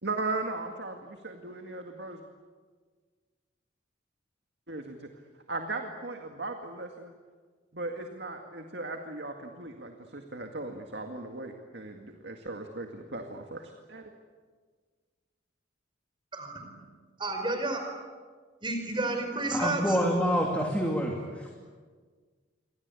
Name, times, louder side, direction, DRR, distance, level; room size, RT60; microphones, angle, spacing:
voice 1, 0.0-2.2 4.7-5.1 5.5-7.1 7.7-14.1, right 2 dB, 65° right, 4 dB, 2.1 m, -37 dB
voice 2, 16.3-16.6 17.2-17.8 18.6-20.0, right 2 dB, 25° right, 5 dB, 5.1 m, -31 dB
voice 3, 19.5-21.5, equal, 10° left, 0 dB, 2.9 m, -27 dB
29.0 x 24.5 x 8.4 m, 1.6 s
head